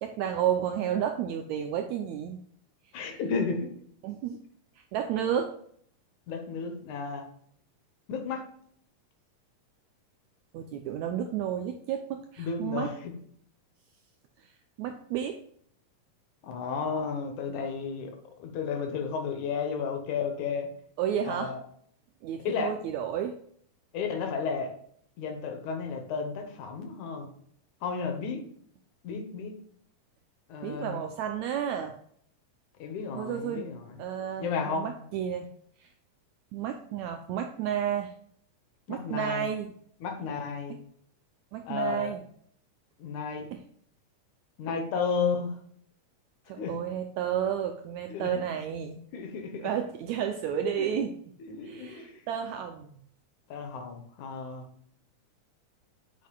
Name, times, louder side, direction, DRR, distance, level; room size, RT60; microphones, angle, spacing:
voice 1, 0.0-2.4 3.0-3.2 4.0-4.4 4.9-5.5 10.5-12.9 14.4-14.5 14.8-15.4 21.0-21.5 22.2-23.4 30.6-31.9 33.2-33.7 34.0-35.5 35.8-35.9 36.5-38.1 38.9-39.7 41.5-42.2 43.5-43.6 46.5-49.0 49.6-51.2 51.6-52.9, right 9 dB, 85° right, 6 dB, 1.6 m, -31 dB
voice 2, 2.9-3.7 6.3-7.2 8.1-8.5 12.4-13.1 16.4-18.1 18.4-20.7 21.2-21.6 22.4-22.7 23.9-24.7 25.2-27.3 27.8-28.4 29.0-29.6 30.5-31.0 32.8-34.0 34.4-35.0 38.9-39.5 40.0-40.8 41.7-42.1 43.0-43.5 44.6-45.5 46.6-46.7 48.1-48.3 49.1-49.7 50.8-50.9 51.4-52.2 53.5-54.6, left 5 dB, 70° left, 5 dB, 2.3 m, -33 dB
8.3 x 6.2 x 2.3 m, 0.64 s
omnidirectional pair, 3.8 m